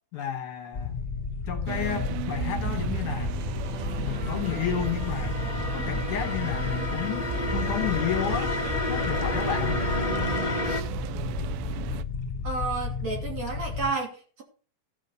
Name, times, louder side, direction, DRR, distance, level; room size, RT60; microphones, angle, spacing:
voice 1, 0.1-0.9 1.5-3.3 4.0-5.3 5.7-7.2 7.5-8.5 8.9-9.8, left 10 dB, 65° left, 2.5 m, -31 dB
sound 1, 0.7-13.9, left 4 dB, 15° left, 3.7 m, -33 dB
sound 2, 1.7-12.0, right 11 dB, 85° right, 2.5 m, -35 dB
sound 3, 3.1-10.8, left 2 dB, 50° left, 0.4 m, -32 dB
voice 2, 12.4-14.4, right 3 dB, 45° right, 3.8 m, -31 dB
14.5 x 5.4 x 6.6 m
omnidirectional pair, 4.2 m